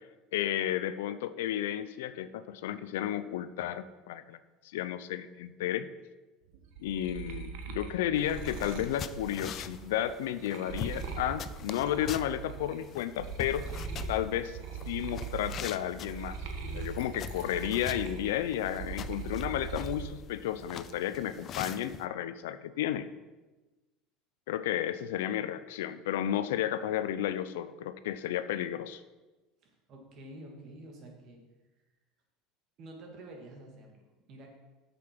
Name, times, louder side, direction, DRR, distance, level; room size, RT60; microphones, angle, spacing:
voice 1, 0.3-4.4 4.7-5.9 6.8-13.7 14.1-14.6 14.9-16.4 16.7-23.1 24.5-29.0, left 11 dB, 85° left, 13 dB, 0.5 m, -32 dB
sound 1, 6.5-12.8 13.1-20.1 20.5-21.2, right 5 dB, 80° right, 1.3 m, -41 dB
sound 2, 8.2-22.0, left 9 dB, 45° left, 0.5 m, -44 dB
voice 2, 29.6-31.4 32.8-34.5, right 1 dB, 50° right, 1 dB, 2.5 m, -49 dB
8.4 x 6.9 x 6.0 m, 1.1 s
supercardioid pair, 105°, 0 cm